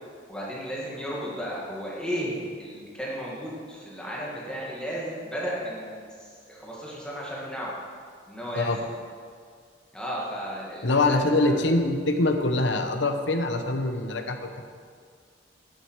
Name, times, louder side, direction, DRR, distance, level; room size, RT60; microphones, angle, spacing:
voice 1, 0.3-7.7 8.3-8.7 9.9-11.8, equal, 5° left, -6 dB, 1.9 m, -34 dB
voice 2, 10.8-14.6, left 2 dB, 75° left, 6 dB, 1.0 m, -24 dB
10.5 x 9.7 x 4.7 m, 2.1 s
head